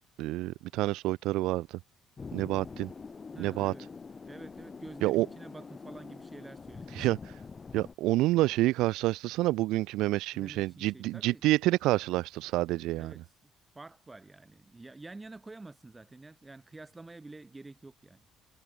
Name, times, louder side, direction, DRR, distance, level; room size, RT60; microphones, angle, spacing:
voice 1, 0.2-1.8 2.3-2.9 3.4-3.7 5.0-5.3 7.0-7.3 7.7-13.1, right 17 dB, 75° right, 0.9 m, -28 dB
sound 1, 2.2-7.9, left 4 dB, 20° left, 1.8 m, -45 dB
voice 2, 3.3-3.8 4.3-7.1 10.3-11.4 13.0-13.2 13.7-18.2, right 2 dB, 10° right, 6.4 m, -48 dB
cardioid pair, 170°, 0 cm